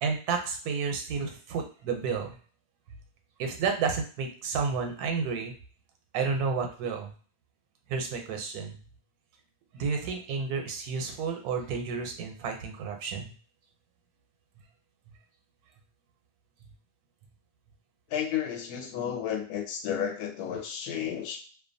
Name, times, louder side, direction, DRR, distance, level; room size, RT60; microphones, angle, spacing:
voice 1, 0.0-2.4 3.4-5.5 6.1-7.1 7.9-8.8 9.7-13.3, right 5 dB, 80° right, 4 dB, 1.1 m, -31 dB
voice 2, 18.1-21.4, left 9 dB, 85° left, 3 dB, 1.1 m, -32 dB
2.6 x 2.2 x 2.5 m, 0.41 s
omnidirectional pair, 1.6 m